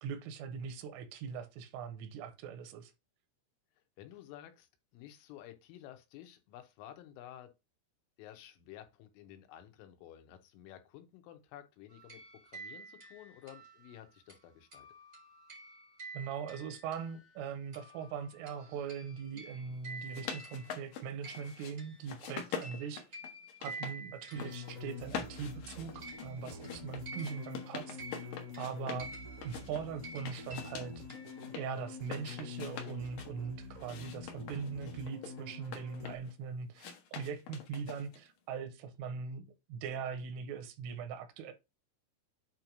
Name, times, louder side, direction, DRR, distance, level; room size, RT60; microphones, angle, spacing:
voice 1, 0.0-2.9 16.1-23.0 23.6-29.1 29.4-31.1 31.6-41.5, right 6 dB, 85° right, 3.6 m, -41 dB
voice 2, 4.0-7.5 8.2-14.9, left 12 dB, 90° left, 3.6 m, -52 dB
sound 1, 11.9-17.4 17.7-25.6 25.9-31.6, right 3 dB, 70° right, 0.6 m, -50 dB
sound 2, 19.9-21.7 22.1-24.0 24.2-24.8 25.1-29.1 29.4-31.6 32.0-33.3 33.8-36.3 36.8-38.3, left 7 dB, 70° left, 2.1 m, -44 dB
sound 3, 24.3-36.2, left 5 dB, 45° left, 1.3 m, -47 dB
8.7 x 3.0 x 5.1 m
omnidirectional pair, 5.6 m